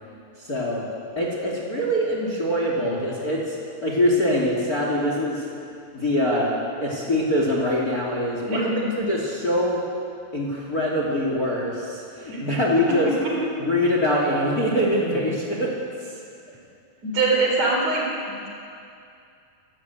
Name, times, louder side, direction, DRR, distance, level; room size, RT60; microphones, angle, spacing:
voice 1, 0.4-0.9 1.2-5.5 5.9-8.7 9.0-9.8 10.3-13.1 13.6-15.7 16.0-16.2, left 1 dB, 25° left, -2 dB, 3.0 m, -24 dB
voice 2, 8.5-8.9 12.3-12.5 13.2-13.3 17.0-18.1, right 3 dB, 45° right, -2 dB, 5.3 m, -23 dB
29.5 x 15.0 x 8.5 m, 2.5 s
omnidirectional pair, 4.3 m